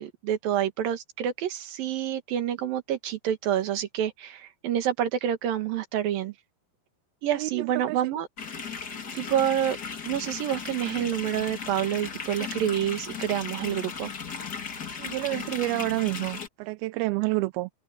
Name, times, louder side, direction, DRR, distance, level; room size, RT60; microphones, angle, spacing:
voice 1, 0.0-6.3 7.2-8.3 9.1-9.8 10.0-14.1, right 10 dB, 60° right, 3.2 m, -28 dB
voice 2, 7.3-8.0 15.0-17.7, right 21 dB, 80° right, 2.3 m, -29 dB
sound 1, 8.4-16.5, left 6 dB, 40° left, 1.4 m, -36 dB
omnidirectional pair, 4.9 m